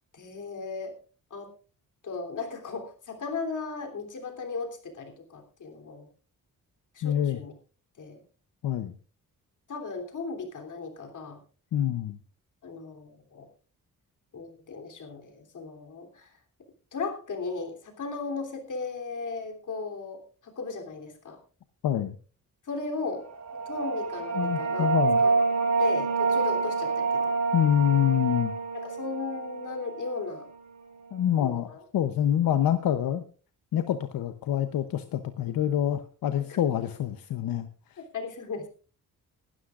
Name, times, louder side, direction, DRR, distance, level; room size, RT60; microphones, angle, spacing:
voice 1, 0.1-0.9 1.3-1.5 2.0-6.1 6.9-7.5 8.0-8.2 9.7-11.4 12.6-13.5 14.3-16.3 16.9-21.4 22.6-23.3 23.6-25.0 25.2-25.4 25.8-27.3 28.7-30.5 31.4-31.8 36.5-36.6 38.1-38.7, left 4 dB, 60° left, 3 dB, 3.3 m, -36 dB
voice 2, 7.0-7.4 8.6-8.9 11.7-12.2 21.8-22.2 24.3-25.2 27.5-28.5 31.1-31.7 31.9-33.2 33.7-38.0, left 10 dB, 90° left, 9 dB, 0.8 m, -26 dB
sound 1, 23.3-30.6, right 4 dB, 55° right, 4.1 m, -27 dB
21.0 x 12.5 x 2.5 m, 0.37 s
cardioid pair, 110°, 34 cm